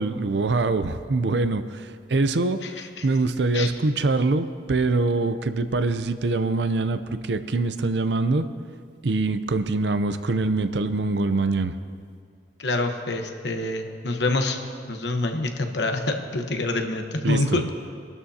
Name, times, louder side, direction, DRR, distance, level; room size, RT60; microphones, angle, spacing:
voice 1, 0.0-8.5 9.0-11.7 17.2-17.6, right 3 dB, 70° right, 11 dB, 0.6 m, -24 dB
voice 2, 12.6-14.6 14.9-17.6, left 2 dB, 70° left, 4 dB, 1.1 m, -26 dB
24.0 x 12.5 x 2.8 m, 2.1 s
head